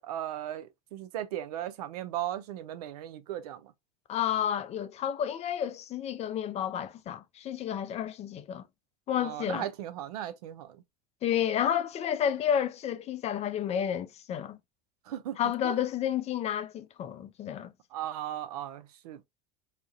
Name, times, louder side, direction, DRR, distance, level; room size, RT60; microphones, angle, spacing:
voice 1, 0.0-3.7 9.2-10.8 15.1-15.4 15.6-15.8 17.9-19.2, right 12 dB, 80° right, 0.4 m, -37 dB
voice 2, 4.1-8.6 9.1-9.7 11.2-14.6 15.4-17.7, left 9 dB, 35° left, 0.4 m, -31 dB
2.3 x 2.1 x 2.6 m
hypercardioid pair, 85°, 19 cm